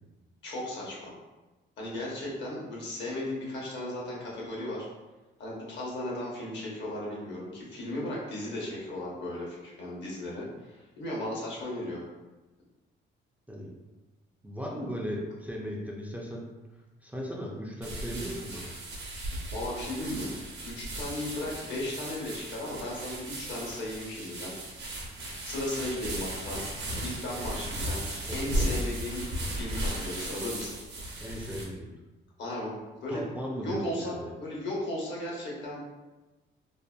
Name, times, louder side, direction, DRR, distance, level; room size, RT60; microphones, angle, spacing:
voice 1, 0.4-1.1 1.8-4.9 5.4-12.0 19.5-20.3 20.6-24.5 25.4-26.6 27.0-28.0 28.3-30.8 32.4-33.3 33.6-35.8, left 1 dB, 65° left, -4 dB, 0.9 m, -36 dB
voice 2, 14.4-16.5 17.0-18.8 28.2-28.5 31.2-31.9 33.1-34.3, equal, 10° right, -3 dB, 0.4 m, -37 dB
Sand in bag, 17.8-31.6, right 1 dB, 60° right, 0.7 m, -36 dB
2.6 x 2.1 x 2.2 m, 1.1 s
cardioid pair, 90°, 20 cm